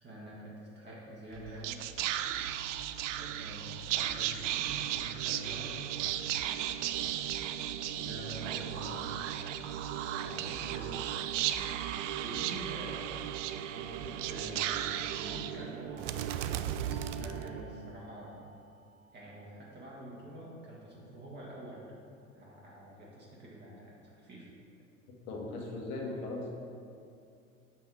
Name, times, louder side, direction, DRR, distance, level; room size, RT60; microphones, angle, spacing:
voice 1, 0.0-1.8 3.1-5.8 7.9-9.4 10.1-11.0 12.2-13.2 13.7-16.3 17.1-18.4 19.1-21.8 22.3-24.5, right 1 dB, 25° right, -6 dB, 1.8 m, -47 dB
Whispering, 1.3-17.9, right 11 dB, 60° right, 0.5 m, -35 dB
sound 1, 16.9-22.2, right 1 dB, 5° right, 0.8 m, -61 dB
voice 2, 25.3-26.5, left 2 dB, 50° left, -1 dB, 1.6 m, -38 dB
7.5 x 5.5 x 4.6 m, 2.5 s
figure-of-eight pair, 75°, 41 cm